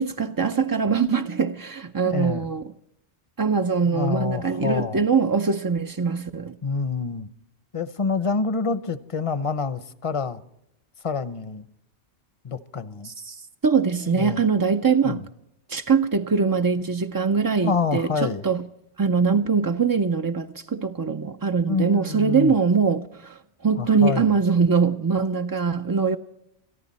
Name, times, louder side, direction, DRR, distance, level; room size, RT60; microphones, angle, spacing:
voice 1, 0.0-2.6 3.4-6.6 13.0-15.2 15.7-18.6 19.0-26.2, right 5 dB, 35° right, 0.3 m, -22 dB
voice 2, 2.0-2.5 3.8-5.0 6.6-7.3 7.7-10.4 11.0-11.7 12.4-13.1 14.1-14.5 15.0-15.2 17.6-18.4 21.7-22.6 23.8-24.3, left 5 dB, 35° left, 0.7 m, -27 dB
22.0 x 14.0 x 4.2 m
omnidirectional pair, 1.1 m